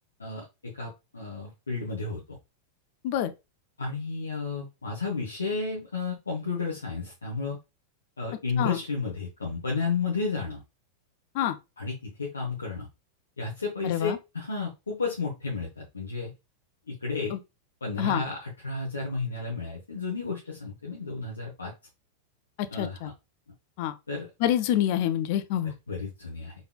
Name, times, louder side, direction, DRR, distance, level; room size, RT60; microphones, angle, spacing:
voice 1, 0.2-2.4 3.8-7.6 8.2-10.6 11.8-12.9 13.4-16.3 16.9-17.4 17.8-21.7 22.7-23.1 24.1-24.3 25.9-26.5, left 4 dB, 75° left, 0.9 m, -32 dB
voice 2, 13.8-14.2 17.3-17.4 18.0-18.2 22.8-23.1 23.8-23.9 24.4-25.7, left 11 dB, 45° left, 0.5 m, -26 dB
4.1 x 3.4 x 2.2 m
figure-of-eight pair, 90°, 0 cm